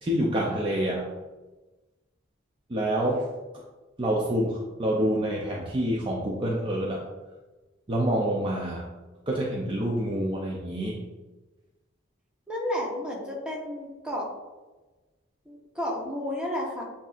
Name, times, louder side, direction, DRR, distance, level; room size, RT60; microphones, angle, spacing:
voice 1, 0.0-1.1 2.7-3.3 4.0-7.0 7.9-8.9 9.3-11.0, right 1 dB, 25° right, -3 dB, 0.5 m, -27 dB
voice 2, 12.5-14.3 15.5-16.8, left 1 dB, 5° right, -3 dB, 1.0 m, -32 dB
7.9 x 2.7 x 2.5 m, 1.2 s
head